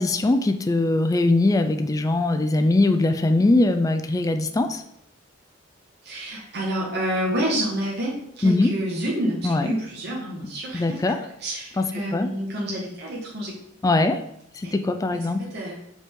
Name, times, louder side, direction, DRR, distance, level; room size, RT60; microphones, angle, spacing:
voice 1, 0.0-4.8 8.4-8.7 9.4-9.7 10.7-11.2 11.8-11.9 12.1-12.3 13.8-14.2 14.5-15.4, left 2 dB, 15° left, 8 dB, 0.3 m, -21 dB
voice 2, 6.0-13.5 14.6-14.7 15.1-15.8, right 1 dB, 55° right, -4 dB, 1.4 m, -29 dB
5.1 x 5.1 x 3.7 m, 0.76 s
head